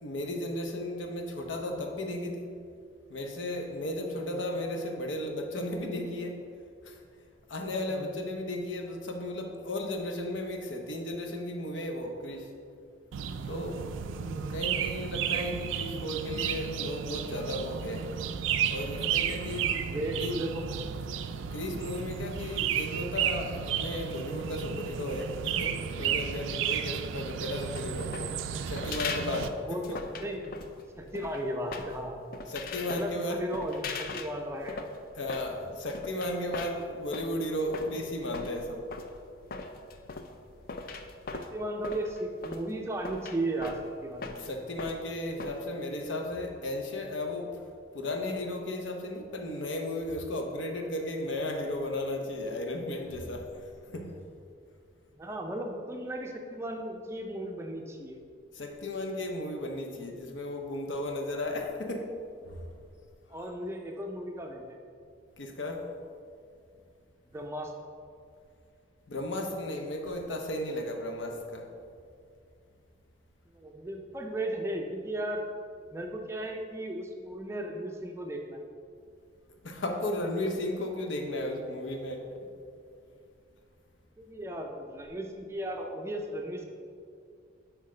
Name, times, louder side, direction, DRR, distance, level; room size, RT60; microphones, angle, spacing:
voice 1, 0.0-2.6 3.1-6.4 6.8-7.0 7.5-12.5 13.5-13.9 14.5-18.1 18.7-19.7 20.2-20.4 21.5-28.2 28.7-30.0 32.5-33.4 35.1-38.9 44.4-47.6 47.9-54.2 58.5-62.1 62.4-62.7 65.4-65.9 69.1-71.7 79.6-82.3, left 1 dB, 85° left, 3 dB, 0.7 m, -35 dB
sound 1, 13.1-29.5, right 8 dB, 85° right, 0.3 m, -33 dB
voice 2, 14.1-14.6 19.9-20.8 29.6-30.5 31.0-32.2 32.9-34.9 41.3-44.5 55.2-58.2 63.3-64.8 67.3-67.7 73.5-75.5 75.9-78.6 84.2-86.7, right 1 dB, 15° right, 2 dB, 0.4 m, -36 dB
sound 2, 27.6-45.6, left 4 dB, 50° left, 0.4 m, -41 dB
7.5 x 4.7 x 3.2 m, 2.4 s
head